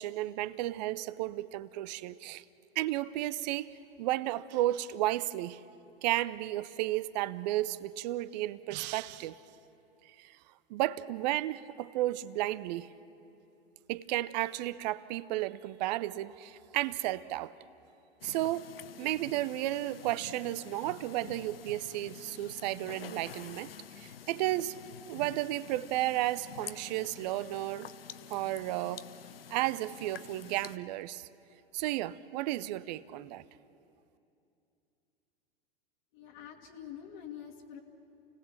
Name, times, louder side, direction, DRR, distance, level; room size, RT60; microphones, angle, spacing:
voice 1, 0.0-2.4 2.8-5.6 6.0-9.4 10.2-10.3 10.7-12.9 13.9-17.5 18.2-18.7 19.0-24.8 25.1-27.9 28.3-29.0 29.5-31.3 31.7-33.4, right 15 dB, 45° right, 0.7 m, -33 dB
sound 1, 18.2-30.8, left 9 dB, 70° left, 0.9 m, -48 dB
voice 2, 36.1-37.8, left 9 dB, 50° left, 2.0 m, -46 dB
29.5 x 18.0 x 7.3 m
figure-of-eight pair, 95°, 31 cm